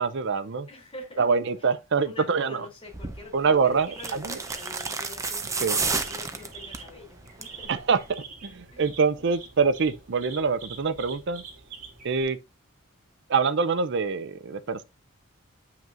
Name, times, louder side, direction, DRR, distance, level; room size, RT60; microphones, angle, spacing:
voice 1, 0.0-0.7 1.2-2.7 3.3-4.4 5.6-5.8 7.7-11.4 12.0-12.4 13.3-14.8, right 5 dB, 55° right, 0.5 m, -25 dB
voice 2, 0.7-1.2 1.6-1.7 2.0-7.7 8.7-8.8, left 3 dB, 25° left, 3.4 m, -45 dB
sound 1, 2.9-3.2 4.0-6.9 7.3-7.6 7.9-8.0, right 4 dB, 15° right, 0.7 m, -30 dB
sound 2, 3.4-12.2, right 5 dB, 40° right, 3.0 m, -46 dB
8.9 x 5.8 x 2.6 m
head